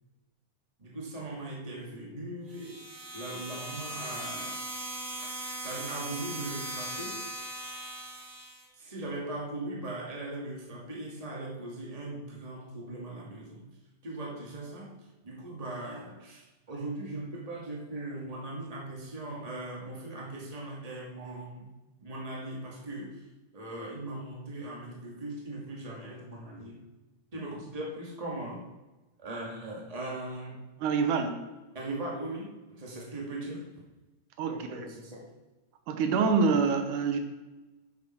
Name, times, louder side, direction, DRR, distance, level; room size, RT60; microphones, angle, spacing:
voice 1, 0.8-2.8 3.1-4.6 5.6-7.2 8.8-13.7 14.0-15.0 15.2-21.7 22.0-23.2 23.5-26.8 27.3-28.6 29.2-30.6 31.7-33.6 34.5-35.2, right 2 dB, 15° right, -3 dB, 1.9 m, -39 dB
sound 1, 2.5-8.7, right 1 dB, 40° right, 1.8 m, -39 dB
voice 2, 30.8-31.4 34.4-34.8 35.9-37.2, right 5 dB, 80° right, 6 dB, 2.4 m, -26 dB
10.5 x 7.5 x 4.6 m, 1.1 s
omnidirectional pair, 3.6 m